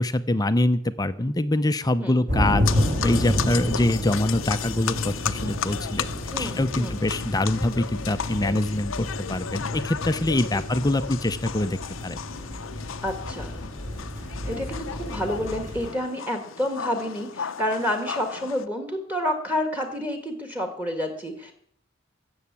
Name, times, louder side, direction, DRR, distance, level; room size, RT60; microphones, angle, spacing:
voice 1, 0.0-2.6 3.0-6.1 6.4-12.2, left 1 dB, 20° left, 11 dB, 0.6 m, -24 dB
sound 1, 2.3-15.9, equal, 45° right, 4.8 m, -30 dB
sound 2, 2.6-18.7, left 7 dB, 75° left, 0.7 m, -35 dB
voice 2, 6.3-7.0 13.0-13.6 14.2-21.5, left 1 dB, 10° right, 5 dB, 1.9 m, -29 dB
14.5 x 7.2 x 8.5 m, 0.67 s
head